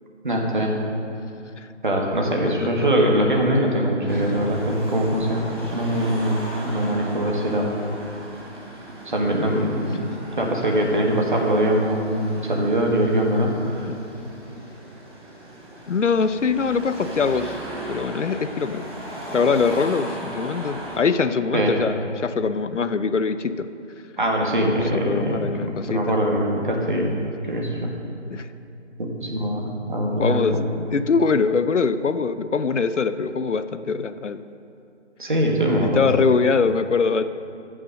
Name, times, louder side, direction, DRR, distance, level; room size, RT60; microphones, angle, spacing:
voice 1, 0.2-0.7 1.8-5.5 5.7-7.7 9.0-10.0 10.4-13.9 21.5-21.8 24.2-27.1 27.5-27.9 29.0-30.6 35.2-36.0, right 1 dB, 40° right, 0 dB, 1.6 m, -22 dB
Car passing by / Traffic noise roadway noise / Engine, 4.1-21.0, right 1 dB, 20° right, 1.6 m, -37 dB
voice 2, 15.9-17.6 17.9-18.8 19.3-23.7 24.6-26.2 28.3-28.5 30.2-30.6 30.9-34.4 35.8-37.2, left 5 dB, 75° left, 12 dB, 0.6 m, -23 dB
13.5 x 6.1 x 6.4 m, 2.6 s
figure-of-eight pair, 175°, 36 cm